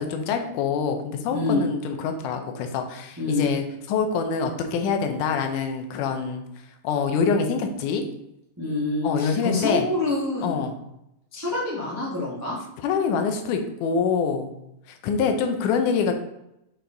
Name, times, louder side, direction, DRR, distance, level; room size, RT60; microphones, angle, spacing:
voice 1, 0.0-6.4 6.8-8.0 9.0-9.9 10.4-10.7 12.8-14.5 14.9-16.1, left 5 dB, 75° left, 5 dB, 2.2 m, -25 dB
voice 2, 1.3-1.7 3.2-3.5 8.6-10.6 11.3-12.6, left 2 dB, 15° right, -6 dB, 0.5 m, -26 dB
6.6 x 4.4 x 3.9 m, 0.82 s
omnidirectional pair, 3.8 m